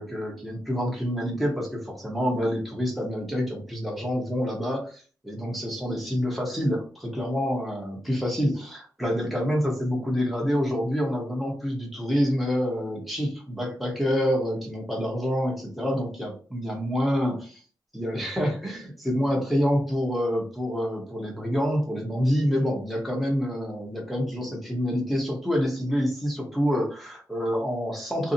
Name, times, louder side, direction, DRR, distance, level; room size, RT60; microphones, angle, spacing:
voice 1, 0.0-17.4 17.9-28.3, equal, ahead, -1 dB, 1.1 m, -27 dB
2.7 x 2.4 x 2.7 m, 0.40 s
cardioid pair, 85°, 8 cm